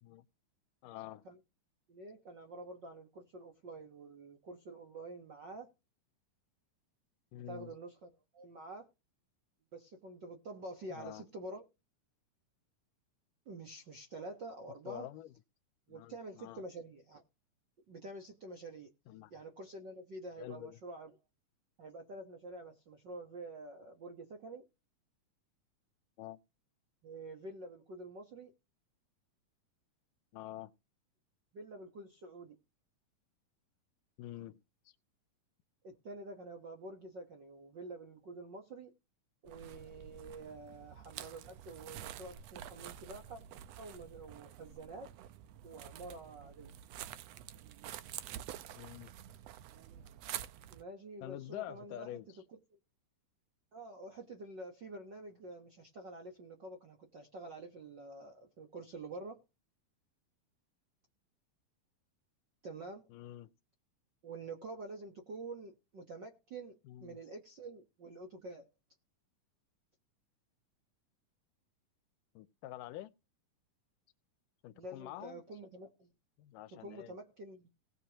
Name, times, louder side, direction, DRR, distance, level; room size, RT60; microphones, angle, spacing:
voice 1, 0.8-1.3 7.3-7.7 10.9-11.3 14.9-15.3 15.9-16.6 19.1-19.3 20.4-20.8 26.2-26.4 30.3-30.7 34.2-34.6 48.8-49.1 51.2-52.3 63.1-63.5 66.9-67.2 72.4-73.1 74.6-75.4 76.4-77.2, left 14 dB, 80° left, 2.2 m, -46 dB
voice 2, 1.9-5.7 7.5-8.9 9.7-11.6 13.4-15.1 15.9-17.2 17.9-18.9 19.3-21.1 21.8-24.7 27.0-28.5 31.5-32.6 35.8-38.9 39.4-43.4 43.8-45.1 45.6-46.7 50.7-52.2 52.5-52.6 53.7-59.4 62.6-63.1 64.2-68.7 74.7-76.1 76.8-77.7, right 2 dB, 60° right, 1.1 m, -48 dB
sound 1, 39.5-50.8, right 11 dB, 90° right, 1.4 m, -48 dB
18.5 x 6.8 x 3.0 m
omnidirectional pair, 3.9 m